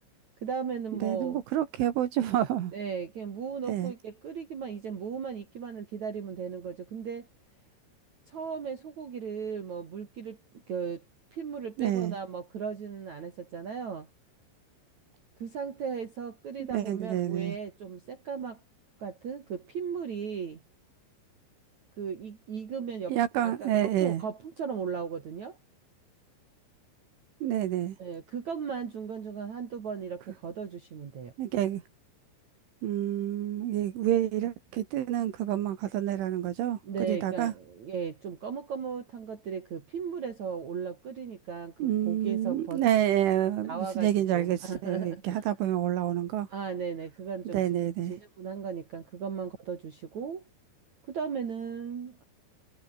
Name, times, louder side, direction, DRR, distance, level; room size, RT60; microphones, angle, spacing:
voice 1, 0.4-1.4 2.7-7.3 8.3-10.4 10.7-11.0 11.3-14.1 15.4-18.6 19.0-20.6 22.0-23.2 23.4-25.6 28.0-31.3 36.8-42.8 43.7-45.4 46.5-50.4 51.1-52.2, right 6 dB, 45° right, 3.2 m, -36 dB
voice 2, 0.9-2.7 3.7-3.9 11.8-12.2 16.6-17.6 23.1-24.2 27.4-28.0 31.4-31.8 32.8-37.5 41.8-46.5 47.5-48.1, right 12 dB, 75° right, 4.3 m, -28 dB
omnidirectional pair, 5.7 m